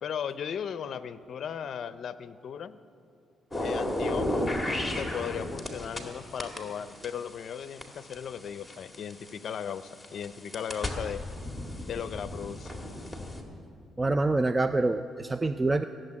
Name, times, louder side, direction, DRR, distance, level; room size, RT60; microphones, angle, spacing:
voice 1, 0.0-2.8 3.6-4.5 5.0-11.2 11.9-12.7, left 8 dB, 60° left, 13 dB, 0.5 m, -36 dB
sound 1, 3.5-6.1 6.4-9.3 9.9-13.4, left 1 dB, 10° left, 2.1 m, -33 dB
voice 2, 14.0-15.8, right 2 dB, 20° right, 10 dB, 0.4 m, -26 dB
15.5 x 7.6 x 9.6 m, 2.4 s
cardioid pair, 90°, 0 cm